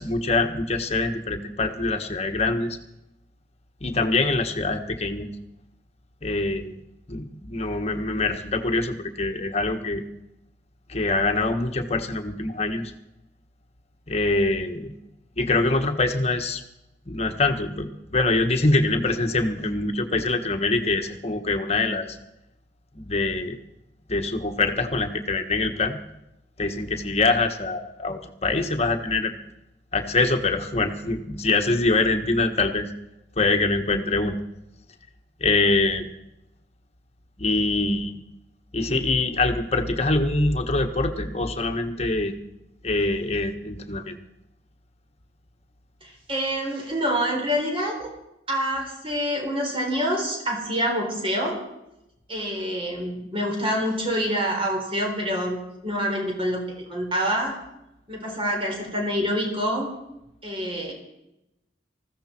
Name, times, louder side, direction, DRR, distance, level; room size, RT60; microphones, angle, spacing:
voice 1, 0.0-2.8 3.8-5.3 6.2-6.7 7.1-10.0 10.9-12.9 14.1-14.9 15.4-16.6 17.1-22.2 22.9-23.6 24.1-26.0 26.6-29.3 29.9-32.9 33.4-34.4 35.4-36.1 37.4-38.2 38.7-42.3 42.8-44.1, left 3 dB, 35° left, 6 dB, 1.5 m, -24 dB
voice 2, 46.0-48.2 48.5-51.6 52.3-57.6 58.1-59.9 60.4-60.9, equal, 30° right, 1 dB, 4.2 m, -26 dB
20.0 x 15.0 x 4.5 m, 0.88 s
head